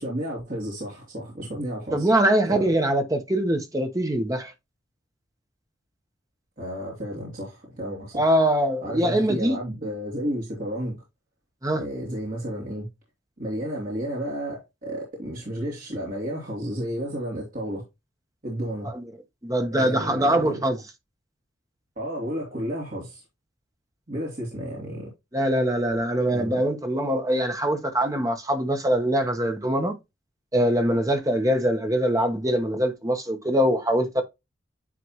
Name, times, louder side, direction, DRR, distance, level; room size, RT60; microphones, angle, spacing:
voice 1, 0.0-2.1 2.5-2.7 6.6-8.3 8.8-11.0 11.7-12.9 13.4-17.8 18.4-18.9 19.7-20.6 22.0-23.2 24.1-25.1 26.3-26.6, equal, 45° right, 2.5 m, -32 dB
voice 2, 1.9-4.5 8.1-9.6 11.6-11.8 18.8-19.0 19.4-20.8 25.3-29.9 30.5-34.2, right 1 dB, 20° right, 1.1 m, -23 dB
9.5 x 3.4 x 3.0 m
head